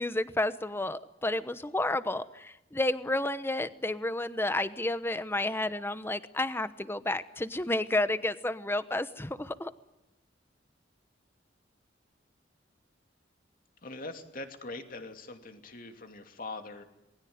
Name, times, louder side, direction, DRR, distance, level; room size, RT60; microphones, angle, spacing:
voice 1, 0.0-9.7, left 2 dB, 15° left, 13 dB, 1.0 m, -31 dB
voice 2, 13.8-16.8, left 2 dB, 50° left, 6 dB, 2.7 m, -42 dB
27.0 x 20.5 x 9.5 m, 0.90 s
head